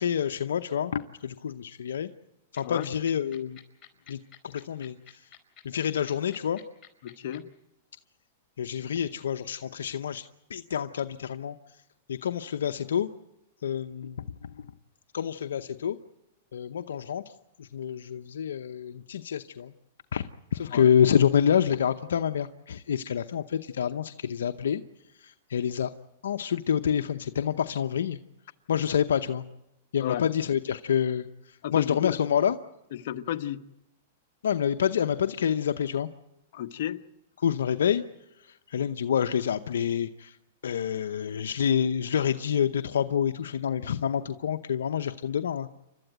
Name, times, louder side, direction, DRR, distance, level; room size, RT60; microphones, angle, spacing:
voice 1, 0.0-2.1 2.5-3.6 4.1-5.3 5.6-6.6 8.6-11.6 12.1-13.1 13.6-14.2 14.5-14.7 15.1-16.0 16.5-17.3 17.6-19.7 20.1-24.8 25.2-25.9 26.2-28.2 28.7-29.4 29.9-32.6 34.4-36.1 37.4-38.0 38.4-40.4 40.6-45.7, left 8 dB, 90° left, 8 dB, 0.7 m, -27 dB
sound 1, 2.6-7.4, left 10 dB, 25° left, 5.0 m, -49 dB
voice 2, 7.0-7.4 20.7-20.9 30.0-30.3 31.6-32.2 32.9-33.6 36.5-37.0, left 11 dB, 60° left, 8 dB, 1.1 m, -32 dB
29.5 x 13.0 x 9.1 m, 0.89 s
hypercardioid pair, 135°, 0 cm